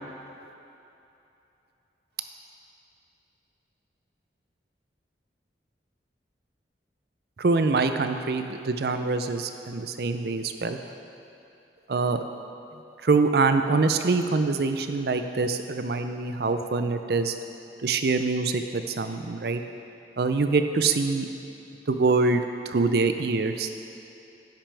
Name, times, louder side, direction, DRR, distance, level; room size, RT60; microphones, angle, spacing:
voice 1, 7.4-10.8 11.9-12.2 13.0-17.3 17.8-19.6 20.2-21.3 21.9-23.7, right 3 dB, 60° right, 8 dB, 0.5 m, -24 dB
10.0 x 8.8 x 3.4 m, 2.8 s
head